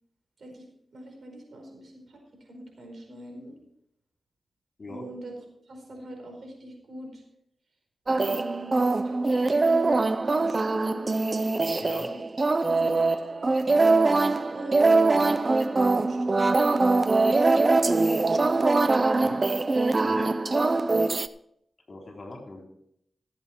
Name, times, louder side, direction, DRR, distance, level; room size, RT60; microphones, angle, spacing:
voice 1, 0.9-2.2 2.5-3.6 4.9-5.3 5.7-7.2 8.1-11.1 12.1-12.2 12.6-13.7 14.2-17.0 17.3-17.8, right 2 dB, 70° right, 1 dB, 4.8 m, -42 dB
sound 1, 8.1-21.3, right 3 dB, 45° right, 0.6 m, -23 dB
voice 2, 11.8-12.1 19.2-19.5 20.0-20.3 21.9-22.7, left 2 dB, 55° left, 1 dB, 3.5 m, -40 dB
15.5 x 8.2 x 4.4 m, 0.74 s
cardioid pair, 55°, 0 cm